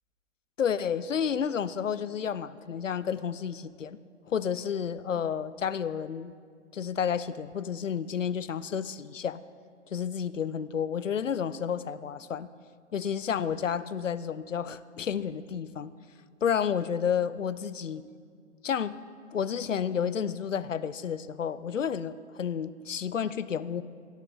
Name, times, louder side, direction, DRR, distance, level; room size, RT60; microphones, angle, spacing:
voice 1, 0.6-4.0 4.3-6.3 6.7-9.4 9.9-12.5 12.9-15.9 16.4-18.1 18.6-19.0 19.3-23.8, left 7 dB, 90° left, 16 dB, 0.5 m, -31 dB
16.0 x 6.5 x 5.1 m, 2.1 s
figure-of-eight pair, 120°, 37 cm